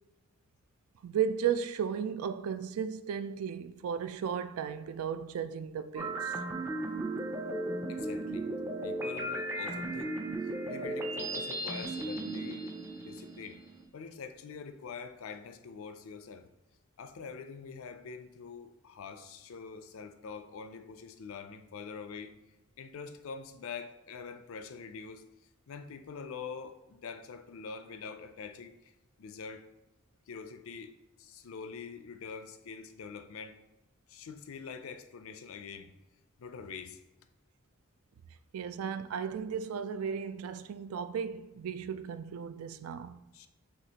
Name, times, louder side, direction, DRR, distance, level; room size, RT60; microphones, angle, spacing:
voice 1, 1.0-6.3 38.5-43.2, right 7 dB, 90° right, 0.3 m, -35 dB
sound 1, 6.0-13.8, right 1 dB, 10° right, 0.4 m, -36 dB
voice 2, 7.9-8.5 8.8-10.2 10.7-13.6 13.9-16.5 17.0-22.4 22.8-25.3 25.7-28.9 29.2-29.7 30.3-33.6 34.1-35.9 36.4-37.0 43.3-43.5, left 5 dB, 80° left, 0.4 m, -45 dB
6.1 x 2.4 x 2.8 m
head